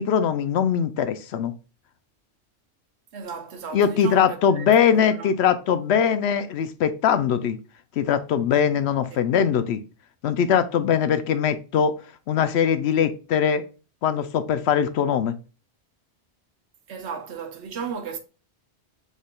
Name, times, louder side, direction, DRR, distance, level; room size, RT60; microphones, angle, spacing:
voice 1, 0.0-1.5 3.7-7.6 8.0-9.8 10.2-11.9 12.3-13.6 14.0-15.3, left 8 dB, 70° left, 0.8 m, -21 dB
voice 2, 3.1-4.7 4.9-5.3 16.9-18.2, right 6 dB, 70° right, 1.1 m, -35 dB
6.4 x 3.5 x 2.3 m
omnidirectional pair, 1.2 m